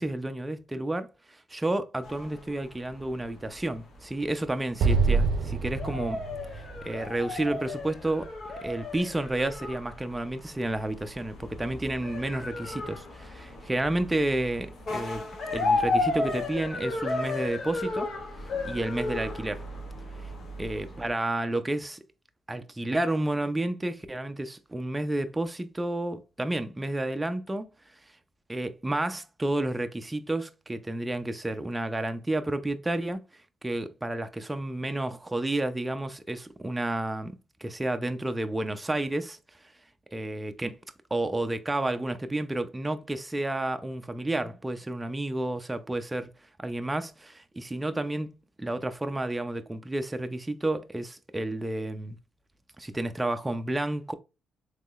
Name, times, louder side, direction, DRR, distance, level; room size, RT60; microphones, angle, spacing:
voice 1, 0.0-6.2 6.5-8.3 8.6-15.2 15.5-18.1 18.6-19.6 20.6-22.0 22.5-27.7 28.5-33.2 33.6-39.4 40.1-40.8 41.1-46.3 46.6-52.2 52.8-54.1, right 1 dB, 15° right, 0.4 m, -31 dB
sound 1, 2.0-21.1, left 2 dB, 55° left, 1.1 m, -34 dB
Explosion, 4.8-8.1, right 4 dB, 70° right, 0.5 m, -27 dB
3.7 x 3.0 x 2.3 m
cardioid pair, 90°, 0 cm